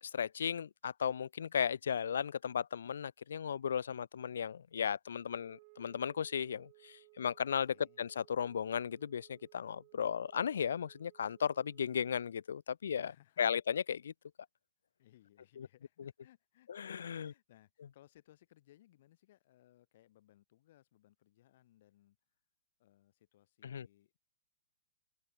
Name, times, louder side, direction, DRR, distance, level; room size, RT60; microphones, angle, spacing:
voice 1, 0.0-13.1 13.4-14.1 15.6-15.7 16.7-17.3 23.6-23.9, left 7 dB, 90° left, 0.7 m, -35 dB
Wind instrument woodwind instrument, 5.2-12.3, right 32 dB, 35° right, 2.3 m, -63 dB
voice 2, 7.5-8.0 13.0-13.5 15.0-22.2 22.8-24.2, left 14 dB, 45° left, 5.2 m, -65 dB
open air
hypercardioid pair, 165°, 0 cm